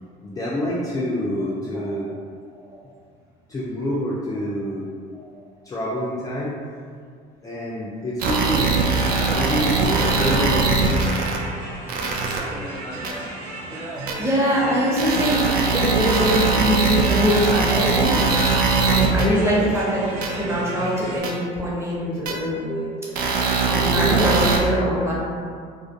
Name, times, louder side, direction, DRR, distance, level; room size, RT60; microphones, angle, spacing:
voice 1, 0.2-2.1 3.5-4.9 5.6-6.6 7.4-8.8 9.3-11.1 18.4-18.6 18.8-20.1 20.4-20.7 22.3-24.2, equal, 20° left, -6 dB, 0.3 m, -28 dB
voice 2, 1.7-2.1 2.5-2.8 5.1-5.4 9.1-9.4 14.2-18.2 18.8-22.7 23.7-25.1, equal, 15° right, -6 dB, 0.8 m, -23 dB
sound 1, 8.2-11.4 11.9-12.4 13.0-13.1 14.1-14.2 15.0-19.3 20.2-20.3 21.2-21.3 22.3-22.4 23.1-24.6, right 4 dB, 55° right, 0.4 m, -21 dB
sound 2, 8.7-21.2, right 2 dB, 85° right, 0.7 m, -34 dB
2.3 x 2.1 x 2.6 m, 2.1 s
supercardioid pair, 90°, 18 cm